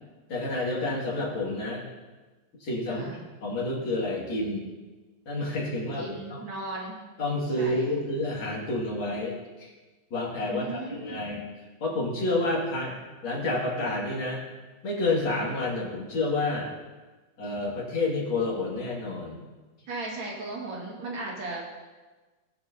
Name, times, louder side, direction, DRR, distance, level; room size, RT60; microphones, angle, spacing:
voice 1, 0.3-1.8 2.6-3.1 3.4-4.7 5.3-6.4 7.2-9.7 10.1-11.4 11.8-13.0 13.2-14.4 14.8-16.7 17.4-19.4, left 2 dB, 85° left, -4 dB, 3.1 m, -29 dB
voice 2, 2.9-3.2 6.0-7.0 7.6-7.9 10.4-11.3 19.9-21.8, right 2 dB, 85° right, -3 dB, 2.7 m, -36 dB
19.5 x 6.7 x 2.8 m, 1.3 s
omnidirectional pair, 2.1 m